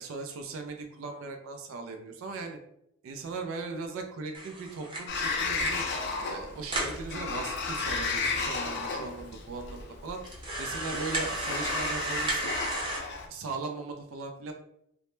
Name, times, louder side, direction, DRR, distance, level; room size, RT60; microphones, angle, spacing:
voice 1, 0.0-2.6 3.0-5.8 6.3-10.2 10.6-12.5 13.3-14.5, right 4 dB, 85° right, 5 dB, 0.3 m, -38 dB
sound 1, 4.3-5.9 6.3-6.4 6.6-7.0 7.7-7.8 8.0-8.1 8.8-8.9 9.4-9.5 10.2-13.0, right 2 dB, 25° right, 0.5 m, -34 dB
Sliding door, 5.1-13.3, left 4 dB, 55° left, 0.4 m, -33 dB
2.1 x 2.0 x 3.0 m, 0.76 s
head